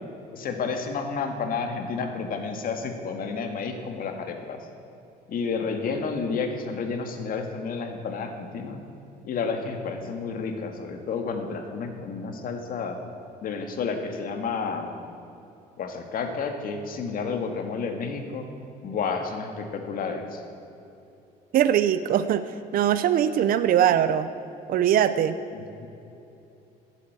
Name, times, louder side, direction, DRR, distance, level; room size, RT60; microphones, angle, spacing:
voice 1, 0.3-4.6 5.3-8.8 9.2-13.0 13.4-14.9 15.8-18.4 18.8-20.4 25.5-25.9, left 5 dB, 55° left, 5 dB, 1.9 m, -31 dB
voice 2, 21.5-22.5 22.7-24.3 24.7-25.3, right 10 dB, 60° right, 12 dB, 0.6 m, -21 dB
15.5 x 8.4 x 8.1 m, 2.9 s
cardioid pair, 110°, 17 cm